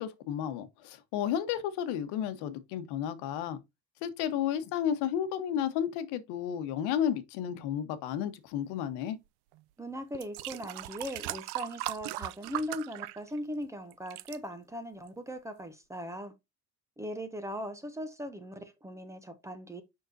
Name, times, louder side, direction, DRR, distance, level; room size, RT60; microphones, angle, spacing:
voice 1, 0.0-3.6 4.0-9.2, left 9 dB, 85° left, 1.2 m, -32 dB
sound 1, 9.5-9.6 10.1-13.6 13.9-14.4 15.1-15.2, right 17 dB, 75° right, 0.6 m, -38 dB
voice 2, 9.8-16.3 17.0-19.8, equal, 10° right, 0.6 m, -39 dB
6.5 x 5.9 x 2.7 m
cardioid pair, 165°, 39 cm